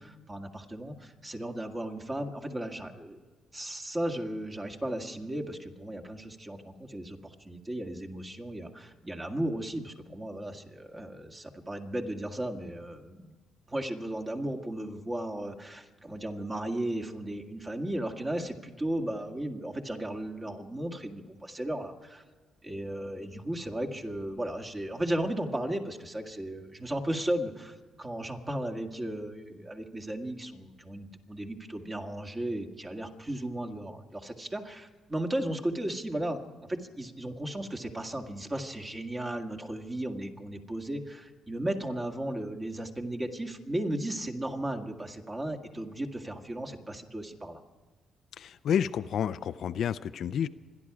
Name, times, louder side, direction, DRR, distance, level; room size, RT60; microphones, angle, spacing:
voice 1, 0.0-3.2 3.5-13.4 13.7-22.2 22.6-47.6, right 1 dB, 20° right, 4 dB, 2.0 m, -35 dB
voice 2, 48.4-50.5, left 8 dB, 65° left, 12 dB, 0.5 m, -30 dB
26.0 x 11.0 x 4.9 m, 1.5 s
cardioid pair, 90°, 0 cm